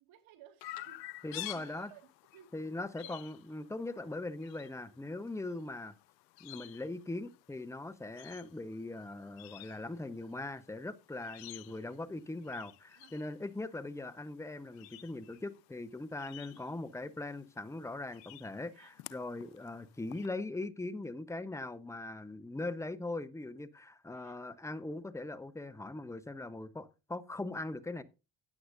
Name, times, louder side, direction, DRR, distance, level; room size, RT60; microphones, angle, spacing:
voice 1, 0.0-2.5 3.0-3.3 11.5-12.0 12.9-13.3 16.5-16.8 18.7-18.9 24.1-24.5, right 11 dB, 70° right, 2.1 m, -59 dB
Chirp tweet, 0.6-20.3, left 16 dB, 90° left, 0.7 m, -52 dB
voice 2, 1.2-1.9 2.5-5.9 6.4-28.0, left 2 dB, 5° left, 0.9 m, -40 dB
15.5 x 9.5 x 2.6 m
hypercardioid pair, 55°, 48 cm